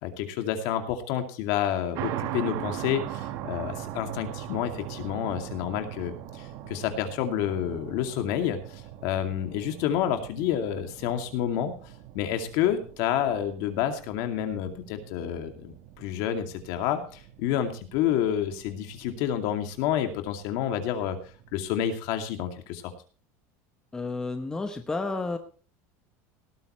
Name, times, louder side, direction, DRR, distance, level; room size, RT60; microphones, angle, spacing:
voice 1, 0.0-11.8 12.1-21.2 21.5-22.9, left 10 dB, 55° left, 6 dB, 2.5 m, -29 dB
sound 1, 1.9-21.7, right 12 dB, 45° right, 1.3 m, -41 dB
voice 2, 23.9-25.4, left 3 dB, 10° left, 6 dB, 0.9 m, -31 dB
18.0 x 13.5 x 3.2 m, 0.37 s
cardioid pair, 175°, 8 cm